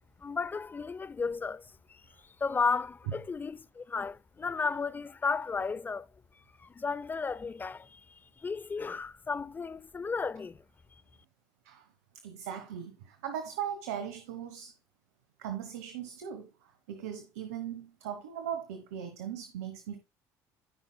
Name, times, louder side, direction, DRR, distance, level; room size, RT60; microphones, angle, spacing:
voice 1, 0.2-1.6 1.9-2.0 2.4-6.1 6.6-8.0 8.4-10.6, left 5 dB, 20° left, 0.5 m, -33 dB
voice 2, 12.2-14.8 15.4-20.0, right 9 dB, 85° right, 1.1 m, -39 dB
15.5 x 5.8 x 2.2 m
hypercardioid pair, 70°, 8 cm